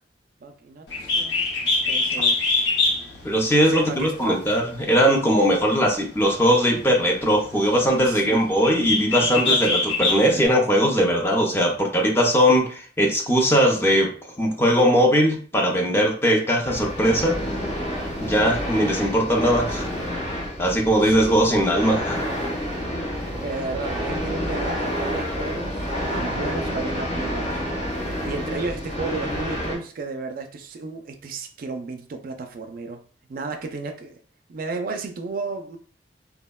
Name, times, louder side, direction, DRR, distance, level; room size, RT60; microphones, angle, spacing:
voice 1, 0.4-1.5 1.9-2.6 3.7-4.4 8.1-8.4 9.3-9.8 10.3-10.5 21.0-21.4 23.4-27.6 28.3-33.0 33.3-34.2 34.5-35.8, right 3 dB, 50° right, 5 dB, 0.3 m, -33 dB
Bird, 0.9-10.5, left 3 dB, 70° left, 0.6 m, -25 dB
voice 2, 3.2-17.4 18.2-19.9 20.6-22.2, equal, 15° left, 1 dB, 0.5 m, -20 dB
sound 1, 16.6-29.8, equal, 35° left, 1.0 m, -29 dB
3.4 x 2.1 x 2.2 m, 0.42 s
head